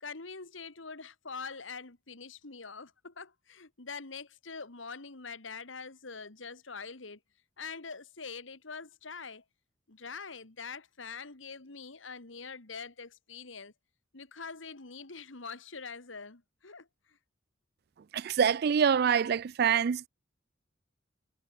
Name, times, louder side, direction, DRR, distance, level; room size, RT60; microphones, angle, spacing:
voice 1, 0.0-7.2 7.6-9.4 9.9-13.7 14.1-17.2, left 5 dB, 85° left, 2.1 m, -44 dB
voice 2, 18.1-20.1, right 7 dB, 55° right, 0.4 m, -25 dB
head